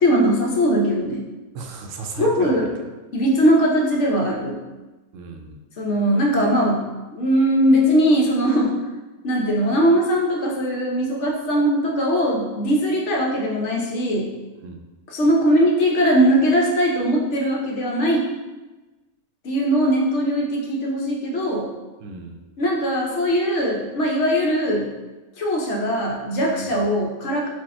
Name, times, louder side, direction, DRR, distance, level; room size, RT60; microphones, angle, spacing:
voice 1, 0.0-1.2 2.2-2.7 3.1-4.6 5.8-6.9 7.1-8.7 9.2-14.3 15.1-18.3 19.4-21.7 22.6-24.9 25.4-27.5, equal, 65° left, -1 dB, 1.0 m, -20 dB
voice 2, 1.5-2.8 5.1-5.6 14.6-14.8 22.0-22.4 26.6-26.8, right 3 dB, 75° right, 3 dB, 0.9 m, -34 dB
4.5 x 2.3 x 4.2 m, 1.1 s
omnidirectional pair, 1.4 m